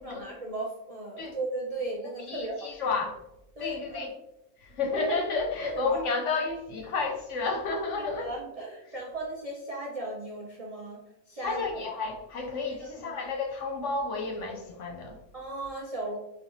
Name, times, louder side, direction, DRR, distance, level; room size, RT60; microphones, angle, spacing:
voice 1, 0.0-2.8 3.6-4.1 5.6-5.9 8.2-11.0 11.3-11.8 15.3-16.2, right 2 dB, 75° right, -3 dB, 0.3 m, -36 dB
voice 2, 2.3-3.2 3.6-4.1 4.6-8.3 11.4-15.2, left 4 dB, 65° left, 2 dB, 0.8 m, -31 dB
5.1 x 2.3 x 2.9 m, 0.90 s
omnidirectional pair, 1.6 m